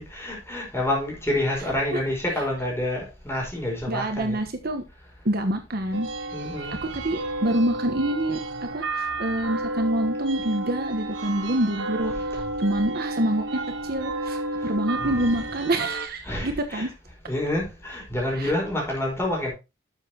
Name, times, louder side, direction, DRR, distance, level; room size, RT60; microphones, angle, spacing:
voice 1, 0.0-4.4 6.3-7.0 12.2-12.5 15.0-15.3 16.2-16.9 17.2-19.5, left 1 dB, 15° left, 4.6 m, -28 dB
voice 2, 3.9-4.8 5.2-6.1 6.9-16.9 18.4-18.5, right 1 dB, 55° right, 1.3 m, -26 dB
sound 1, 5.9-16.1, right 2 dB, 75° right, 1.4 m, -31 dB
11.5 x 7.3 x 2.9 m
head